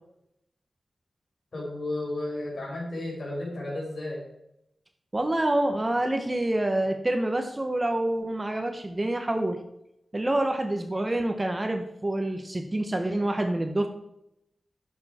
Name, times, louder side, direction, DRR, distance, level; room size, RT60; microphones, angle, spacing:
voice 1, 1.5-4.2, left 1 dB, 60° left, -3 dB, 4.6 m, -33 dB
voice 2, 5.1-9.6 10.1-13.9, right 1 dB, 20° right, 6 dB, 1.0 m, -27 dB
11.5 x 6.9 x 4.3 m, 0.81 s
wide cardioid pair, 125°, 0 cm